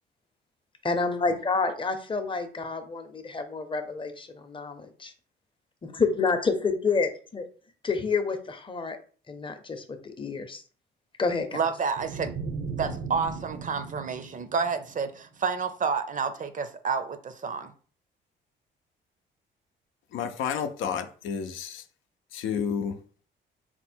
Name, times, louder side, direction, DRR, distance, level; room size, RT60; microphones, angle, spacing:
voice 1, 0.8-5.1 5.8-7.5 7.8-9.0 9.3-10.6 11.2-11.6, left 4 dB, 25° left, 0.7 m, -29 dB
voice 2, 11.5-12.3 12.8-17.7, right 5 dB, 40° right, 0.6 m, -29 dB
sound 1, 12.0-15.2, right 4 dB, 80° right, 0.8 m, -37 dB
voice 3, 20.1-21.8 22.3-23.0, left 7 dB, 80° left, 0.5 m, -31 dB
4.2 x 2.1 x 4.3 m
cardioid pair, 90°, 20 cm